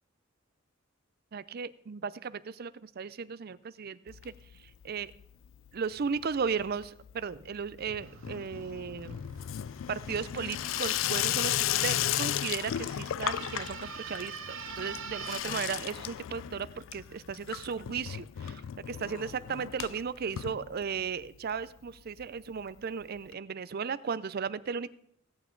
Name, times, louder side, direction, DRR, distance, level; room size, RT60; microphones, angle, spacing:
voice 1, 1.3-4.3 4.8-5.1 5.7-9.2 9.9-24.9, right 6 dB, 50° right, 17 dB, 0.5 m, -36 dB
Water tap faucet / Sink (filling or washing), 4.1-4.9 5.1-5.7 6.0-21.3 21.6-21.7 21.9-22.0 22.2-22.3 23.3-23.4, left 11 dB, 75° left, 0.3 m, -35 dB
sound 1, 8.0-15.4, right 6 dB, 90° right, 1.1 m, -46 dB
16.5 x 9.0 x 3.8 m, 0.69 s
head